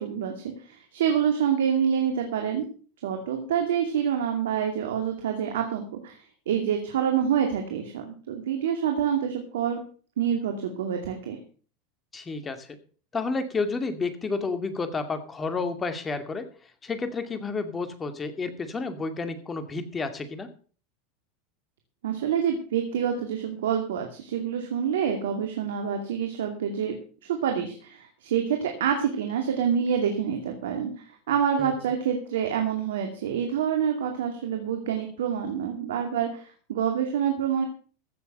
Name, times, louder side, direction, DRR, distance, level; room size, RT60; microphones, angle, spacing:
voice 1, 0.0-2.7 3.0-6.2 6.5-9.8 10.2-11.4 22.0-26.9 27.3-37.6, right 8 dB, 85° right, 4 dB, 2.4 m, -27 dB
voice 2, 12.1-12.7 13.1-16.5 16.8-20.5 31.6-31.7, left 4 dB, 20° left, 9 dB, 2.4 m, -30 dB
15.5 x 7.0 x 6.6 m, 0.41 s
hypercardioid pair, 105°, 0 cm